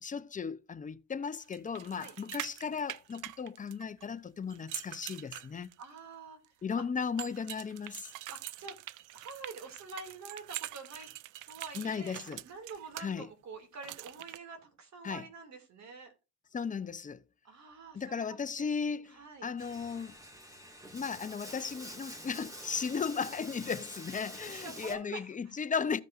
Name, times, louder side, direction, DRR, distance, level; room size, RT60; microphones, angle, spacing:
voice 1, 0.0-5.7 6.6-8.1 11.7-12.4 13.0-13.3 15.0-15.3 16.5-17.2 17.9-20.1 20.9-26.0, left 6 dB, 25° left, 0.6 m, -36 dB
sound 1, 1.5-4.0 4.5-6.0 7.2-13.0 13.8-14.4, right 16 dB, 85° right, 0.5 m, -44 dB
voice 2, 5.8-6.8 8.3-8.8 9.1-11.1 11.5-16.1 17.4-19.5 24.5-25.5, right 4 dB, 65° right, 2.5 m, -47 dB
Bathtub (filling or washing), 19.6-25.0, equal, 10° right, 2.0 m, -47 dB
14.5 x 5.3 x 2.5 m
cardioid pair, 90°, 30 cm